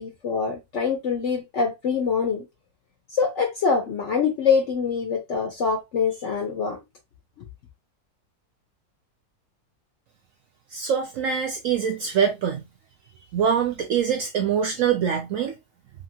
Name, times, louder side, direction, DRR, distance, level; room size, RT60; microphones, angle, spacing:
voice 1, 0.0-2.4 3.1-6.8, left 5 dB, 65° left, 0.8 m, -24 dB
voice 2, 10.7-12.6 13.3-15.5, right 7 dB, 70° right, 0.8 m, -24 dB
2.8 x 2.7 x 2.7 m
omnidirectional pair, 1.8 m